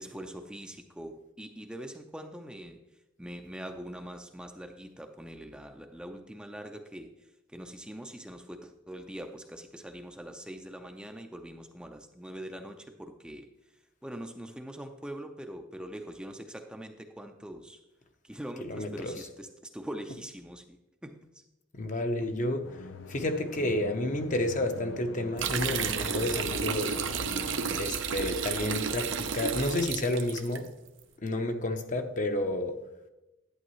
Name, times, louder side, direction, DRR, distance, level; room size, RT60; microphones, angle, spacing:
voice 1, 0.0-2.8 3.2-13.5 14.0-17.8 18.2-21.4, right 1 dB, 5° right, 0.5 m, -43 dB
voice 2, 18.6-19.1 21.7-22.8 23.1-27.0 27.8-30.7 31.2-32.8, left 1 dB, 45° left, 0.8 m, -30 dB
sound 1, 22.6-27.8, left 3 dB, 90° left, 0.6 m, -43 dB
sound 2, 25.4-30.6, right 6 dB, 80° right, 0.7 m, -32 dB
11.0 x 8.7 x 3.1 m
head